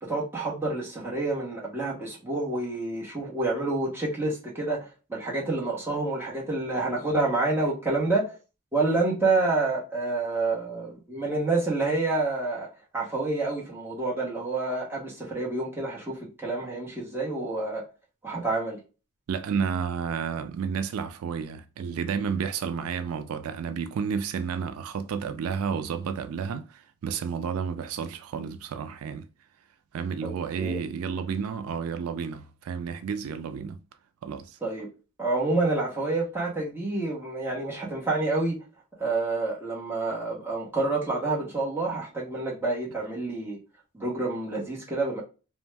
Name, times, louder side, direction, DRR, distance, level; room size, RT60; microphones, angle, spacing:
voice 1, 0.0-8.3 8.7-12.7 12.9-17.8 18.2-18.8 30.2-30.3 30.6-30.8 34.6-34.9 35.2-38.6 39.0-43.6 43.9-45.2, right 2 dB, 10° right, 1.0 m, -28 dB
voice 2, 19.3-29.3 29.9-33.8 34.2-34.6, right 6 dB, 80° right, 0.3 m, -31 dB
2.6 x 2.1 x 3.2 m
head